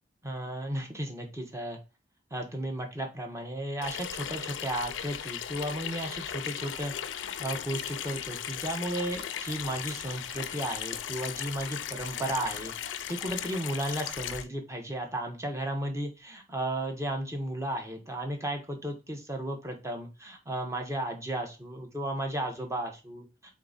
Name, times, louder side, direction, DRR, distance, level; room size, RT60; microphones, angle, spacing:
voice 1, 0.2-1.8 2.3-23.3, right 1 dB, 15° right, 3 dB, 0.9 m, -34 dB
Water tap faucet / Sink (filling or washing), 3.8-14.5, left 9 dB, 80° left, 0.4 m, -37 dB
3.8 x 3.6 x 3.9 m, 0.29 s
head